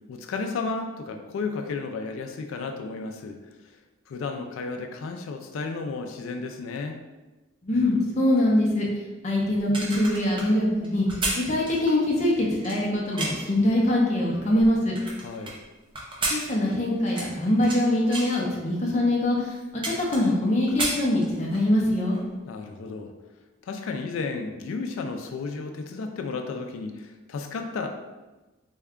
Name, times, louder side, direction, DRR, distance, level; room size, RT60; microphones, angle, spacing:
voice 1, 0.1-3.4 4.1-7.0 15.2-15.6 22.5-23.1 23.6-27.9, left 4 dB, 85° left, 5 dB, 0.3 m, -33 dB
voice 2, 7.6-8.9 9.2-11.1 11.3-15.0 16.3-19.5 19.8-22.2, left 1 dB, 35° left, -3 dB, 0.5 m, -23 dB
sound 1, 9.6-13.6 14.1-15.5 15.9-17.8 18.1-18.4 19.0-19.1 19.4-20.4 20.7-21.7 22.0-22.2, right 2 dB, 25° right, 0.5 m, -32 dB
3.5 x 2.2 x 3.6 m, 1.1 s
head